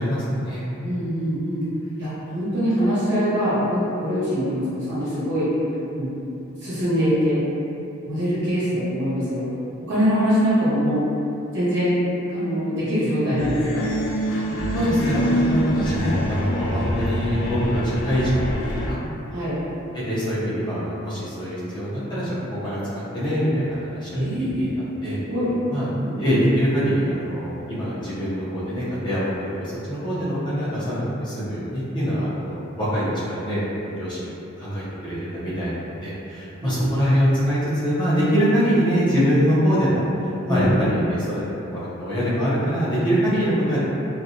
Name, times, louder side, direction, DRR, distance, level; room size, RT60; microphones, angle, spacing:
voice 1, 0.0-0.6 13.3-13.4 14.7-19.0 20.1-24.7 25.0-25.2 25.7-25.9 26.2-34.3 34.6-40.0 40.4-43.8, equal, 20° left, -11 dB, 0.6 m, -24 dB
voice 2, 0.8-1.6 2.0-5.5 5.9-6.1 6.6-7.4 8.0-9.5 9.9-11.1 11.5-12.0 12.3-13.8 19.3-19.6 24.1-24.7 25.3-25.5 26.0-26.2 36.6-36.8 40.4-41.0, equal, 60° right, -11 dB, 1.1 m, -23 dB
sound 1, 13.4-18.9, equal, 65° left, 0.4 m, -24 dB
2.5 x 2.2 x 2.7 m, 2.8 s
head